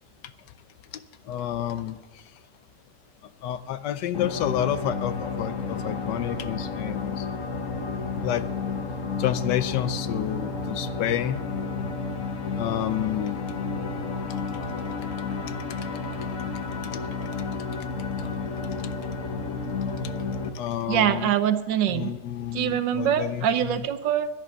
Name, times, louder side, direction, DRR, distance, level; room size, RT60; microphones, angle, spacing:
voice 1, 0.9-2.0 3.4-7.2 8.2-8.4 9.2-11.4 12.6-13.4 16.9-17.0 18.7-18.9 20.5-21.3 21.9-23.8, left 11 dB, 75° left, 13 dB, 1.3 m, -29 dB
sound 1, 4.1-20.5, left 4 dB, 50° left, 1.5 m, -31 dB
voice 2, 20.9-22.1 22.5-24.3, right 10 dB, 85° right, 11 dB, 1.5 m, -24 dB
11.0 x 10.5 x 7.1 m, 1.3 s
omnidirectional pair, 1.9 m